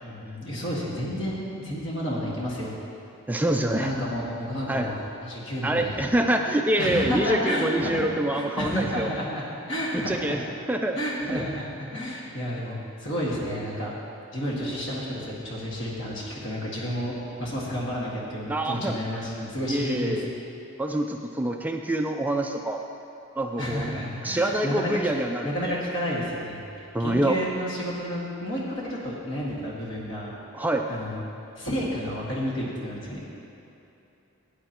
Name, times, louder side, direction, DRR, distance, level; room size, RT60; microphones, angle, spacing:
voice 1, 0.0-2.8 3.5-6.0 6.8-8.0 8.3-10.4 11.0-13.9 14.3-17.1 17.4-20.2 23.6-24.9 25.4-26.6 27.0-30.3 30.9-31.2 31.6-33.4, equal, 55° left, -5 dB, 1.9 m, -31 dB
voice 2, 3.3-3.9 4.7-4.9 5.6-9.1 9.9-10.4 10.7-11.0 11.3-11.4 18.5-19.0 19.7-20.3 20.8-22.8 23.4-23.9 24.2-25.8 26.9-27.4 30.5-30.9, right 1 dB, 10° right, 3 dB, 0.3 m, -26 dB
18.0 x 9.1 x 3.0 m, 2.9 s
head